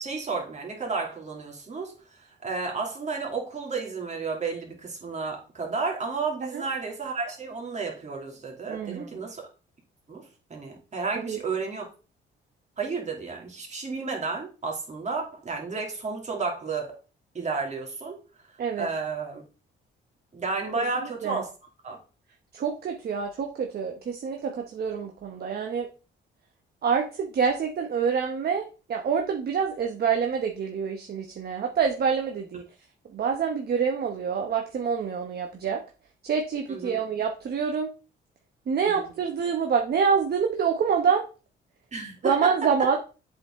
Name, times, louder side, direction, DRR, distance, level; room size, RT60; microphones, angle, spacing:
voice 1, 0.0-9.5 10.1-10.2 10.5-11.9 12.8-16.9 17.3-18.2 18.8-19.4 20.3-21.5 21.8-22.0 36.7-37.0 38.8-39.0 41.9-42.9, right 4 dB, 35° right, 2.6 m, -32 dB
voice 2, 8.7-9.1 11.1-11.4 18.6-18.9 20.8-20.9 21.2-21.4 22.5-25.9 26.8-32.6 33.1-35.8 36.2-37.9 38.7-41.2 42.2-43.0, right 6 dB, 55° right, 1.0 m, -26 dB
7.6 x 4.7 x 3.7 m
cardioid pair, 90°, 20 cm